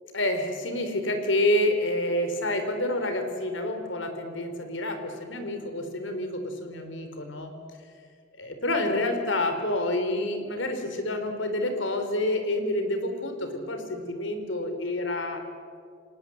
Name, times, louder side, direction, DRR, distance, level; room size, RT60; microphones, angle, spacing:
voice 1, 0.1-7.5 8.4-15.4, left 1 dB, 75° left, 6 dB, 4.0 m, -28 dB
28.5 x 19.0 x 8.0 m, 2.1 s
head